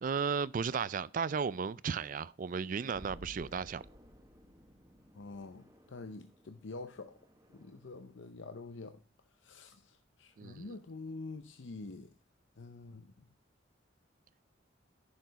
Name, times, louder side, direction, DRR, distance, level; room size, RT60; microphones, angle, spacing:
voice 1, 0.0-3.8 10.4-10.7, right 6 dB, 40° right, 0.3 m, -34 dB
sound 1, 2.9-8.0, equal, 20° right, 1.3 m, -56 dB
voice 2, 5.1-7.2 7.5-9.0 9.4-12.1 12.6-13.3, left 3 dB, 65° left, 0.6 m, -47 dB
10.5 x 6.9 x 4.0 m
head